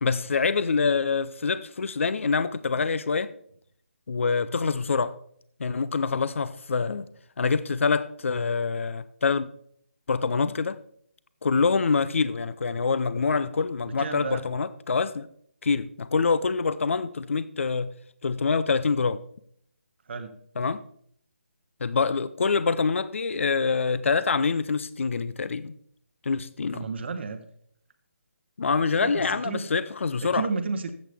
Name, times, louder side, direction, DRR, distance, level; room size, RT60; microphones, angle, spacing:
voice 1, 0.0-3.3 4.1-5.1 5.6-7.1 7.4-9.5 10.1-10.8 11.4-15.3 15.6-17.9 18.2-19.2 20.6-20.8 21.8-25.8 26.2-26.9 28.6-30.5, left 4 dB, 65° left, 0.5 m, -25 dB
voice 2, 13.9-14.4 20.1-20.3 26.7-27.4 29.0-29.7 30.2-30.9, right 4 dB, 55° right, 0.9 m, -32 dB
13.5 x 8.4 x 3.4 m
figure-of-eight pair, 155°, 7 cm